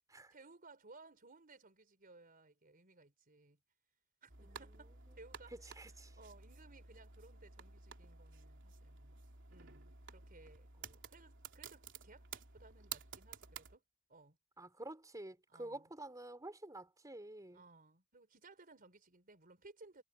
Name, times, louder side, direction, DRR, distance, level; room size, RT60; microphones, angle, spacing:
voice 1, 0.3-3.6 4.2-9.2 9.5-13.8 14.1-14.4 15.5-15.9 17.5-20.0, right 3 dB, 45° right, 4.2 m, -61 dB
sound 1, 4.3-13.8, right 6 dB, 60° right, 3.2 m, -53 dB
voice 2, 4.4-4.8 5.8-6.2 14.6-17.6, right 1 dB, 15° right, 4.3 m, -49 dB
head